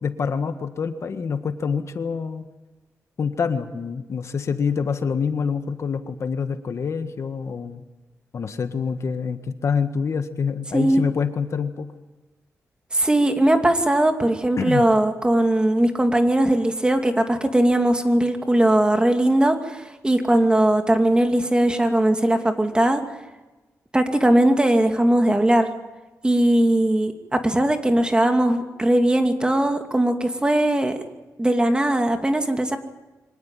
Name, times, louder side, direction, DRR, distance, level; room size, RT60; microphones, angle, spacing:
voice 1, 0.0-2.4 3.2-7.8 8.3-11.9 14.6-14.8, left 6 dB, 60° left, 8 dB, 1.7 m, -26 dB
voice 2, 12.9-23.0 23.9-25.7 26.2-30.9 31.4-32.8, right 1 dB, 15° right, 5 dB, 2.5 m, -19 dB
24.5 x 18.5 x 9.2 m, 1.1 s
cardioid pair, 100°, 6 cm